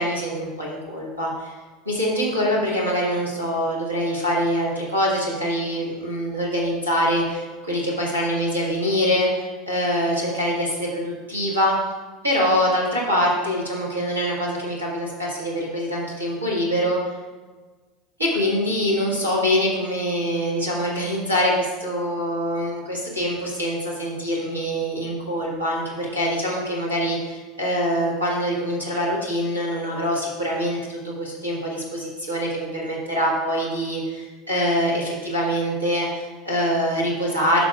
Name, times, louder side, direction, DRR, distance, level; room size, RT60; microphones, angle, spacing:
voice 1, 0.0-1.6 1.8-11.7 12.2-17.0 18.2-37.7, equal, 85° right, -4 dB, 1.5 m, -24 dB
12.5 x 6.0 x 2.4 m, 1.3 s
figure-of-eight pair, 75°, 0 cm